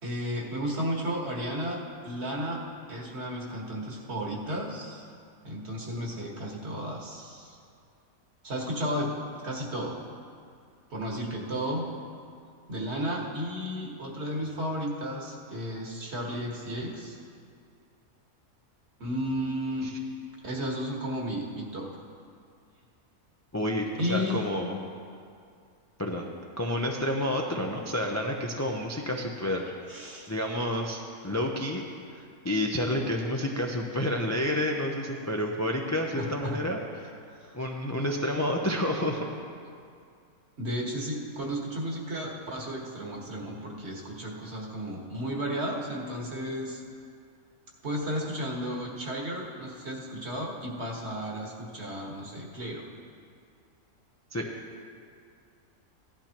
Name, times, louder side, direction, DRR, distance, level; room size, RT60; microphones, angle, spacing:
voice 1, 0.0-1.8 2.0-2.6 2.9-5.1 5.4-7.6 8.4-9.1 9.4-10.0 10.9-11.9 12.7-17.2 19.0-19.9 20.4-21.9 24.0-24.5 29.9-30.3 36.1-36.6 37.3-37.6 40.6-46.8 47.8-52.8, equal, 50° right, -2 dB, 1.8 m, -33 dB
voice 2, 23.5-24.8 26.0-26.3 26.6-29.7 30.3-31.8 32.1-37.1 37.5-39.3 54.3-54.5, left 1 dB, 25° left, 0 dB, 0.4 m, -29 dB
16.5 x 11.5 x 3.0 m, 2.3 s
omnidirectional pair, 1.5 m